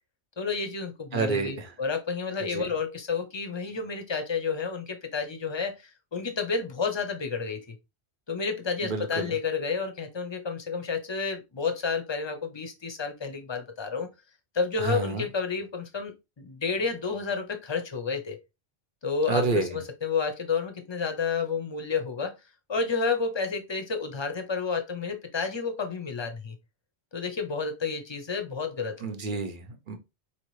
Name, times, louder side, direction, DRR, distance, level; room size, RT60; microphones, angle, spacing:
voice 1, 0.4-7.8 8.3-14.1 14.5-18.4 19.0-22.3 22.7-26.6 27.1-29.4, left 5 dB, 30° left, 0.6 m, -30 dB
voice 2, 1.1-1.7 2.4-2.7 8.8-9.3 14.8-15.3 19.3-19.7 29.0-30.0, right 4 dB, 50° right, 0.9 m, -29 dB
4.4 x 2.9 x 3.1 m
omnidirectional pair, 1.1 m